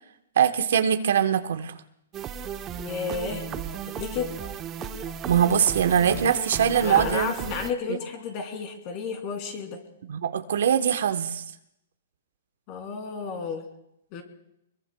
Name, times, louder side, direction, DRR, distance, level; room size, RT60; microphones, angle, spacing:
voice 1, 0.4-1.7 5.3-7.5 7.9-8.0 10.1-11.4, right 8 dB, 70° right, 9 dB, 0.9 m, -22 dB
sound 1, 2.1-7.7, right 8 dB, 25° right, 0.7 m, -35 dB
voice 2, 2.8-3.5 3.9-4.3 6.8-9.8 12.7-13.6 14.1-14.2, left 5 dB, 40° left, 4 dB, 2.8 m, -32 dB
Laughter, 3.4-7.3 7.8-8.2, left 4 dB, 60° left, 6.6 m, -44 dB
24.0 x 22.0 x 2.2 m, 0.80 s
hypercardioid pair, 145°, 0 cm